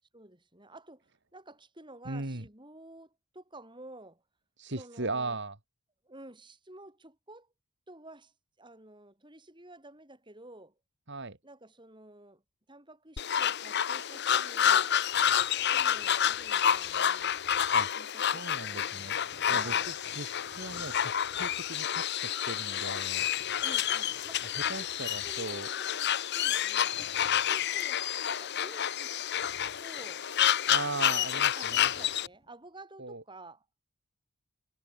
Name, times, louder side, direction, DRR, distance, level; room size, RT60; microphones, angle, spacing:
voice 1, 0.1-4.2 4.7-5.4 6.0-7.5 7.9-10.8 11.4-12.4 12.7-14.9 15.7-17.4 17.9-20.0 23.6-30.2 30.8-33.7, right 2 dB, 20° right, 6.4 m, -52 dB
voice 2, 2.1-2.4 4.6-5.6 11.1-11.4 17.7-17.9 18.2-19.2 19.5-23.3 24.7-25.7 30.6-31.9 33.0-33.2, right 3 dB, 55° right, 2.6 m, -38 dB
sound 1, 13.2-32.3, left 9 dB, 50° left, 0.8 m, -29 dB
sound 2, 15.0-17.9 18.8-21.9 23.1-25.8 26.8-27.7 29.3-30.2 30.5-30.6 31.6-32.5, left 1 dB, 30° left, 4.9 m, -59 dB
head